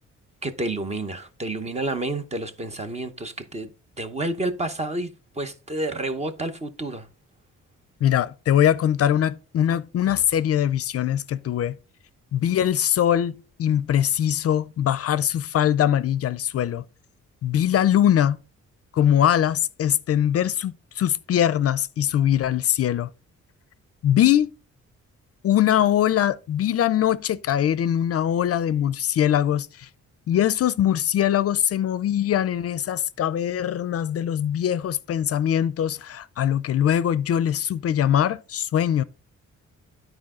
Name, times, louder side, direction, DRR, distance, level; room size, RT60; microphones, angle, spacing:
voice 1, 0.4-3.7 4.0-7.1, right 2 dB, 20° right, 0.8 m, -30 dB
voice 2, 8.0-11.8 12.3-16.8 17.4-18.4 18.9-23.1 24.0-24.5 25.4-29.9 30.3-39.0, left 10 dB, 55° left, 0.5 m, -22 dB
12.0 x 4.5 x 3.7 m
wide cardioid pair, 170°, 29 cm